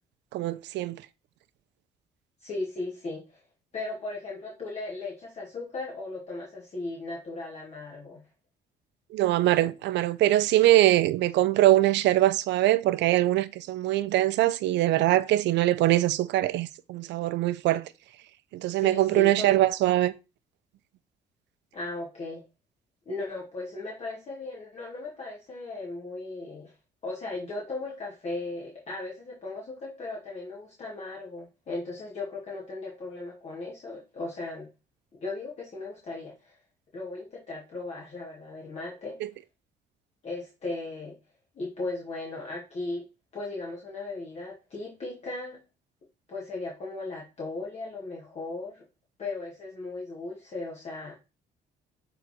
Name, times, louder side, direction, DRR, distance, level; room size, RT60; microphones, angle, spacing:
voice 1, 0.3-1.0 9.1-17.9 18.5-20.1, right 15 dB, 90° right, 0.7 m, -23 dB
voice 2, 2.4-3.4 3.7-8.2 18.8-19.6 21.7-22.4 23.1-26.7 27.0-34.7 35.2-36.6 36.9-39.2 40.2-41.2 41.5-43.0 43.3-45.6 46.3-48.8 49.2-51.1, left 2 dB, 40° left, 2.6 m, -37 dB
11.5 x 4.1 x 4.5 m
cardioid pair, 150°, 18 cm